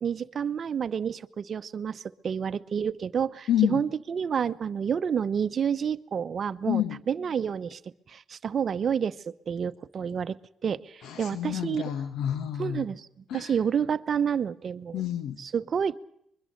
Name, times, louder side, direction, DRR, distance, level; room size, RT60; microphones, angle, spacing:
voice 1, 0.0-7.8 8.1-10.4 10.6-11.8 12.6-13.1 13.3-15.0 15.4-16.0, right 7 dB, 50° right, 13 dB, 0.8 m, -29 dB
voice 2, 3.5-3.8 6.7-7.0 11.0-12.9 13.3-13.5 14.9-15.4, left 11 dB, 80° left, 8 dB, 1.4 m, -28 dB
24.0 x 22.0 x 6.5 m, 0.73 s
cardioid pair, 90°, 0 cm